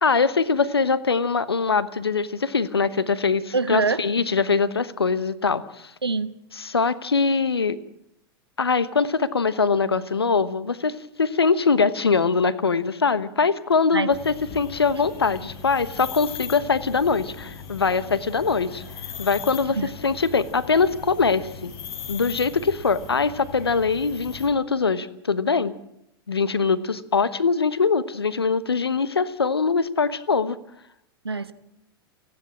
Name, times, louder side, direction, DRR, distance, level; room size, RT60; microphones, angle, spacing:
voice 1, 0.0-5.9 6.5-7.8 8.6-18.8 19.2-21.7 22.1-25.7 26.3-30.6, left 5 dB, 85° left, 16 dB, 1.1 m, -22 dB
voice 2, 3.5-4.0 6.0-6.4 13.9-14.1 19.8-19.9 31.2-31.5, right 4 dB, 90° right, 13 dB, 1.1 m, -24 dB
sound 1, 14.1-24.5, left 6 dB, 45° left, 5.2 m, -39 dB
29.0 x 10.5 x 8.7 m, 0.79 s
figure-of-eight pair, 95°, 13 cm